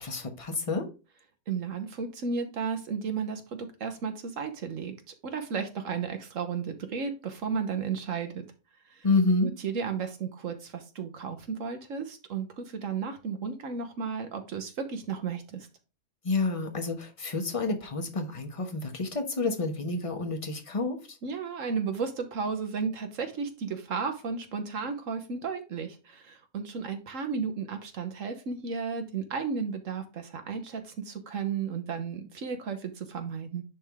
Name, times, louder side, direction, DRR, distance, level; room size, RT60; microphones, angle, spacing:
voice 1, 0.0-0.9 9.0-9.5 16.2-21.2, left 3 dB, 25° left, 1.2 m, -29 dB
voice 2, 1.5-8.5 8.9-9.1 9.4-15.7 21.2-33.6, right 5 dB, 80° right, 1.5 m, -34 dB
10.0 x 3.6 x 3.6 m
omnidirectional pair, 1.3 m